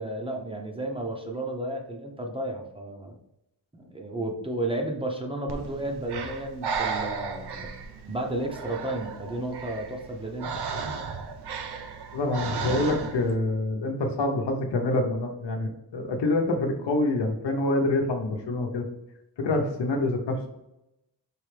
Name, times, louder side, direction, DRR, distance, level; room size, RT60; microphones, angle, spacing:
voice 1, 0.0-3.2 3.7-7.7 8.1-10.6, right 1 dB, 15° right, 2 dB, 0.7 m, -32 dB
Breathing, 5.5-13.4, right 5 dB, 75° right, 0.7 m, -34 dB
voice 2, 12.1-18.9 19.4-20.5, left 2 dB, 80° left, 3 dB, 0.9 m, -26 dB
4.9 x 3.3 x 3.3 m, 0.87 s
cardioid pair, 80°, 41 cm